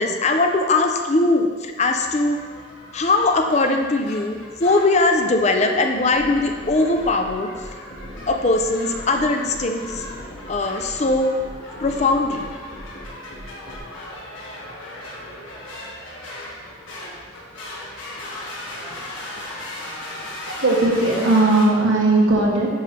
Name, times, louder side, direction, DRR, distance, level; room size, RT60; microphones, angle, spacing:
voice 1, 0.0-2.4 2.9-7.5 8.3-10.0 10.5-11.3 11.8-12.5, left 2 dB, 35° left, 5 dB, 0.5 m, -20 dB
sound 1, 1.8-21.7, left 1 dB, 90° left, 1.9 m, -37 dB
sound 2, 6.1-13.8, equal, 60° left, 1.7 m, -39 dB
voice 2, 20.2-22.7, right 2 dB, 85° right, -2 dB, 1.5 m, -18 dB
9.0 x 5.5 x 3.3 m, 1.5 s
head